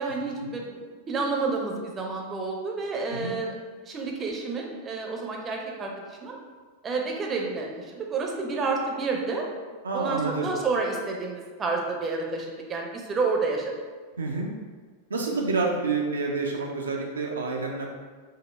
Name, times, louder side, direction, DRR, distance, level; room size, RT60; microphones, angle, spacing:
voice 1, 0.0-3.5 3.8-6.4 6.8-9.4 9.9-13.7, right 3 dB, 25° right, 0 dB, 0.6 m, -30 dB
voice 2, 9.8-10.5 14.2-14.5 15.1-17.9, right 3 dB, 75° right, 0 dB, 0.5 m, -28 dB
5.3 x 2.0 x 3.2 m, 1.5 s
figure-of-eight pair, 90°, 0 cm